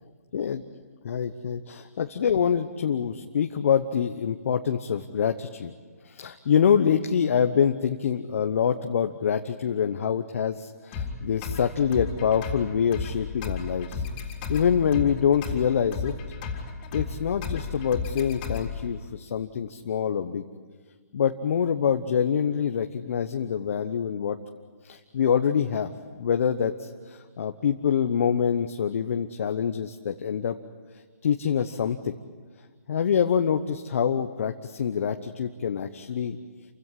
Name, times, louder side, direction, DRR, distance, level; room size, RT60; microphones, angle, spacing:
voice 1, 1.0-5.7 6.0-14.0 14.5-16.1 16.9-20.4 21.1-24.4 24.8-25.9 26.2-30.6 31.2-32.1 32.9-36.4, left 7 dB, 55° left, 7 dB, 1.1 m, -25 dB
sound 1, 10.9-18.9, left 5 dB, 30° left, 3.8 m, -34 dB
28.5 x 16.0 x 9.8 m, 1.5 s
hypercardioid pair, 150°, 9 cm